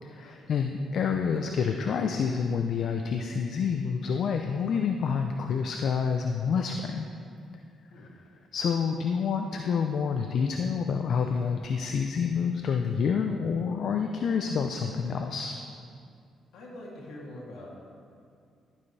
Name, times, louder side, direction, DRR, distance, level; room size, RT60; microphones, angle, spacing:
voice 1, 0.0-7.1 8.5-15.6, left 6 dB, 65° left, 4 dB, 0.6 m, -28 dB
voice 2, 16.5-17.7, left 1 dB, 80° left, -5 dB, 2.9 m, -44 dB
13.5 x 9.6 x 3.4 m, 2.3 s
cardioid pair, 90°, 0 cm